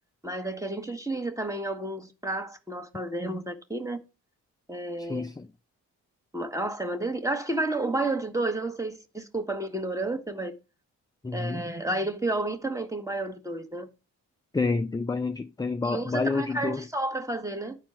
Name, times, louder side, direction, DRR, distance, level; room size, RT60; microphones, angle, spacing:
voice 1, 0.2-4.0 4.7-5.2 6.3-10.5 11.3-13.9 15.8-17.8, right 2 dB, 5° right, 1.4 m, -31 dB
voice 2, 5.0-5.5 11.2-11.6 14.5-16.9, left 3 dB, 10° left, 0.4 m, -29 dB
10.5 x 4.3 x 4.5 m
hypercardioid pair, 40°, 43 cm